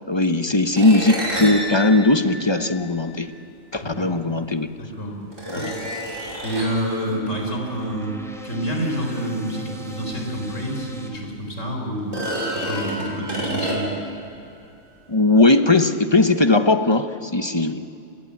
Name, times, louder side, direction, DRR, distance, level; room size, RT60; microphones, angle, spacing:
voice 1, 0.1-3.3 3.7-4.7 5.5-5.7 15.1-17.8, left 2 dB, 25° left, 8 dB, 0.9 m, -18 dB
sound 1, 0.8-3.2 4.4-4.5 5.3-6.9 10.2-10.3 10.7-10.8 12.0-14.1, right 1 dB, 70° right, 5.9 m, -29 dB
voice 2, 3.8-4.1 4.8-5.2 5.5-5.9 6.4-8.1 8.4-12.2 12.5-13.9, equal, 70° left, 2 dB, 4.9 m, -28 dB
sound 2, 6.3-11.1, right 1 dB, ahead, 3.1 m, -39 dB
29.5 x 22.0 x 8.5 m, 2.5 s
omnidirectional pair, 1.4 m